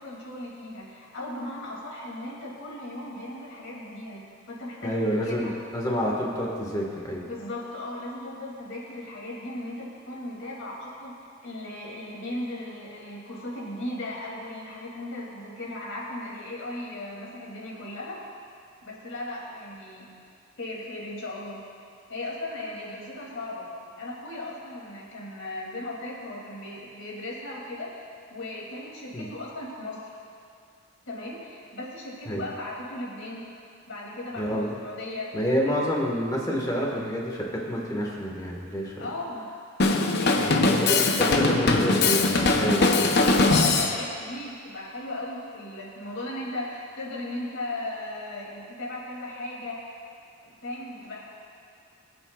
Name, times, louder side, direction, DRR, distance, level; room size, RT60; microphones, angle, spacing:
voice 1, 0.0-5.5 7.3-11.2 11.4-18.2 18.8-20.1 20.6-21.6 22.1-23.7 24.0-30.0 31.1-33.5 33.9-35.3 35.6-35.9 39.0-39.5 40.2-41.7 43.0-49.8 50.4-51.2, left 1 dB, 75° left, -4 dB, 2.8 m, -37 dB
voice 2, 4.8-7.2 29.1-29.3 32.3-32.4 34.4-34.8 35.3-39.1 40.3-42.3 42.5-43.1, equal, 20° left, -2 dB, 1.6 m, -28 dB
Drum kit, 39.8-44.0, left 3 dB, 55° left, 0.7 m, -21 dB
22.5 x 7.9 x 2.4 m, 2.4 s
head